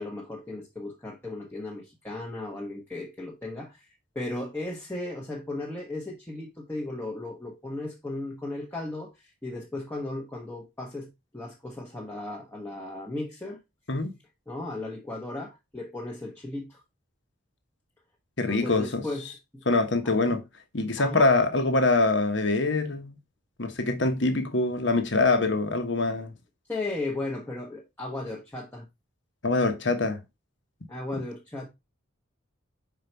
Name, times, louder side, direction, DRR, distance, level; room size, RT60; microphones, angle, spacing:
voice 1, 0.0-3.9 4.1-13.6 14.5-16.8 18.5-19.6 20.0-20.2 21.0-21.3 26.7-28.8 30.9-31.7, left 2 dB, 10° left, 1.0 m, -36 dB
voice 2, 18.4-19.0 19.7-20.4 20.7-23.2 23.6-26.3 29.4-30.2 31.1-31.2, left 3 dB, 60° left, 1.2 m, -24 dB
5.4 x 4.6 x 4.5 m
head